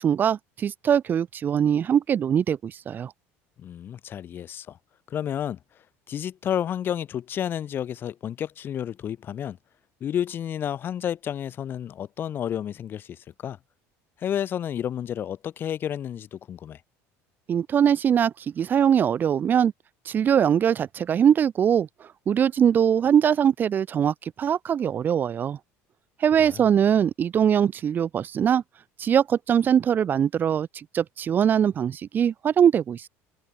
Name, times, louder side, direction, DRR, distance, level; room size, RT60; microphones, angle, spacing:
voice 1, 0.0-3.1 17.5-19.7 20.1-21.9 22.3-25.6 26.2-28.6 29.0-33.1, right 8 dB, 30° right, 2.4 m, -22 dB
voice 2, 3.6-4.8 5.1-5.6 6.1-9.6 10.0-13.6 14.2-16.8 26.4-26.7, left 9 dB, 35° left, 2.2 m, -31 dB
cardioid pair, 150°, 6 cm